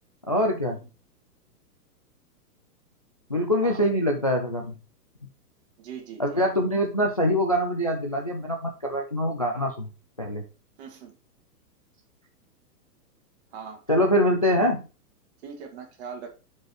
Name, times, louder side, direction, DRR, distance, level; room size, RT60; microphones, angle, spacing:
voice 1, 0.3-0.8 3.3-4.7 6.2-9.9 10.2-10.4 13.9-14.9, equal, 25° left, 2 dB, 0.3 m, -24 dB
voice 2, 5.8-6.4 10.8-11.2 13.5-13.8 15.4-16.3, right 6 dB, 40° right, 3 dB, 2.5 m, -41 dB
7.4 x 5.2 x 4.9 m, 0.31 s
hypercardioid pair, 165°, 48 cm